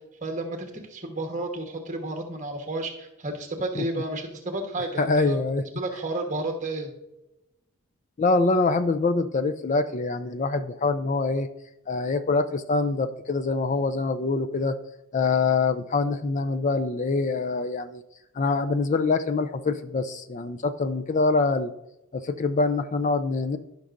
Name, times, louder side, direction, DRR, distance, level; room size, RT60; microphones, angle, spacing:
voice 1, 0.2-5.4 5.8-6.9, right 2 dB, 35° right, 3 dB, 1.1 m, -31 dB
voice 2, 5.0-5.6 8.2-11.5 11.9-14.8 15.1-18.0 18.4-21.7 22.1-23.6, left 3 dB, 35° left, 10 dB, 0.3 m, -24 dB
15.0 x 6.0 x 2.5 m, 0.90 s
head